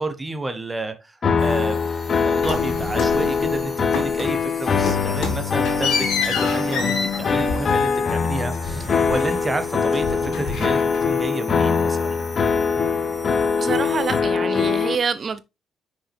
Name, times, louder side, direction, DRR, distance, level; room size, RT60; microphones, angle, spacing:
voice 1, 0.0-1.8 2.1-12.2, right 2 dB, 20° right, 1.3 m, -30 dB
sound 1, 1.2-14.9, left 5 dB, 45° left, 0.9 m, -22 dB
sound 2, 1.4-14.2, equal, ahead, 2.6 m, -41 dB
sound 3, 2.4-3.6 3.9-4.4 4.7-9.6 9.9-11.2, left 4 dB, 80° left, 2.5 m, -28 dB
voice 2, 13.6-15.5, right 6 dB, 45° right, 0.4 m, -26 dB
6.1 x 5.1 x 3.5 m
cardioid pair, 90°, 0 cm